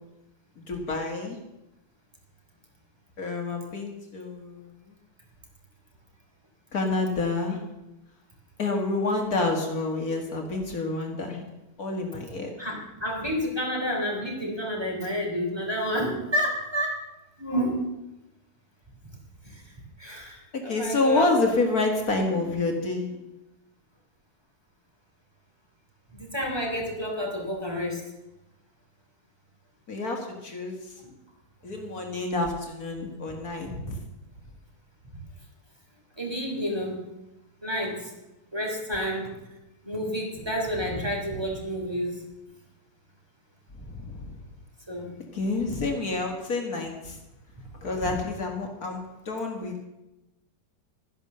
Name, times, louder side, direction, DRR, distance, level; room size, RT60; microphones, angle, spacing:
voice 1, 0.7-1.4 3.2-4.7 6.7-7.6 8.6-11.4 11.8-12.5 20.5-23.1 29.9-30.8 31.6-34.0 43.9-44.2 45.3-47.2 47.8-49.8, left 3 dB, 60° left, 2 dB, 2.4 m, -28 dB
voice 2, 12.6-17.0 17.4-17.8 19.5-19.6 20.0-21.3 22.2-22.3 26.1-28.0 33.7-33.8 36.2-36.9 37.6-38.1 38.5-39.3 39.8-42.2 44.9-45.1, equal, 15° right, -1 dB, 3.0 m, -29 dB
12.5 x 10.5 x 6.7 m, 0.96 s
omnidirectional pair, 1.8 m